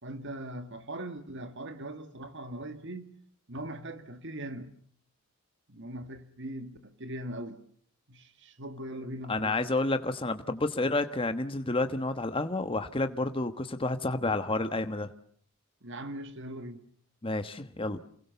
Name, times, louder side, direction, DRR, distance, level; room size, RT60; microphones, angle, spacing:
voice 1, 0.0-3.1 3.5-4.8 5.7-7.6 8.1-9.6 15.8-16.8, right 1 dB, 60° right, 2.1 m, -40 dB
voice 2, 9.3-15.1 17.2-18.0, left 2 dB, 25° left, 1.2 m, -30 dB
28.5 x 22.5 x 6.9 m
head